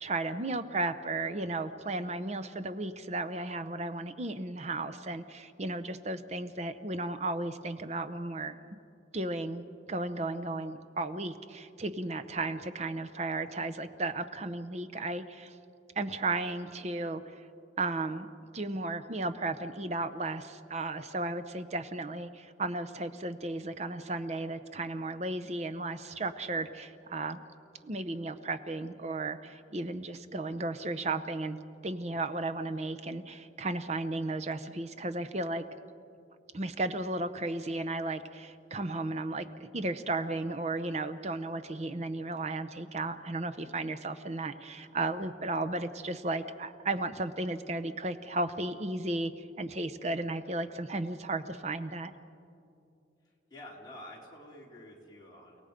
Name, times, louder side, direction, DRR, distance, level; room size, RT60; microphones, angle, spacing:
voice 1, 0.0-8.6 9.1-15.6 16.0-17.2 17.8-18.3 18.5-27.4 27.8-35.6 36.5-39.5 39.7-52.1, right 2 dB, 35° right, 10 dB, 0.7 m, -34 dB
voice 2, 53.5-55.6, left 1 dB, 20° left, -4 dB, 3.4 m, -49 dB
30.0 x 17.5 x 5.1 m, 2.5 s
head